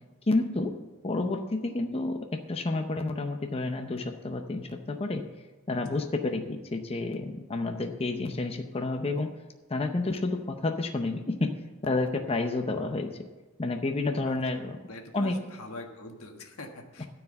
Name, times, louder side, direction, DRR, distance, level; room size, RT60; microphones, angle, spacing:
voice 1, 0.3-0.7 1.0-2.2 2.5-5.2 5.7-9.3 9.7-11.5 11.8-13.1 13.6-14.8 15.1-15.4 17.0-17.1, left 2 dB, 25° left, 5 dB, 0.6 m, -30 dB
voice 2, 5.7-6.0 14.2-14.3 14.9-17.1, left 1 dB, 85° left, 3 dB, 1.5 m, -43 dB
13.0 x 4.8 x 8.8 m, 1.2 s
head